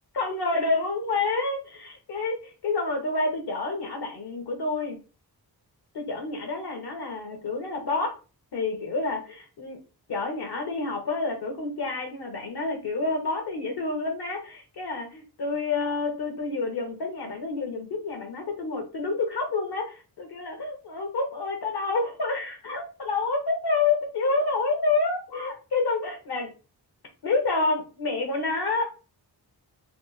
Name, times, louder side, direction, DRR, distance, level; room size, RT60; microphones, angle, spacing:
voice 1, 0.2-5.0 5.9-8.1 8.5-9.8 10.1-26.5 27.2-28.8, left 3 dB, 70° left, 4 dB, 1.2 m, -28 dB
3.4 x 2.1 x 4.0 m, 0.33 s
wide cardioid pair, 145°, 40 cm